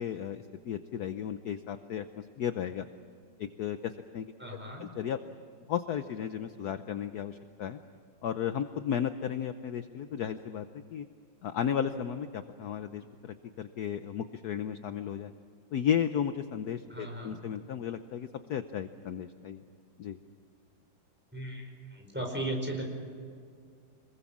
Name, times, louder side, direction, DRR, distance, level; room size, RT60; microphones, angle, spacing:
voice 1, 0.0-2.8 3.4-4.3 4.8-5.2 5.7-7.8 8.2-10.7 10.9-11.1 11.4-15.3 15.7-19.6 20.0-20.2, left 9 dB, 65° left, 10 dB, 1.2 m, -34 dB
voice 2, 4.4-4.9 16.9-17.3 21.3-22.9, right 1 dB, 5° right, 1 dB, 4.8 m, -36 dB
26.5 x 21.5 x 7.3 m, 2.3 s
omnidirectional pair, 2.1 m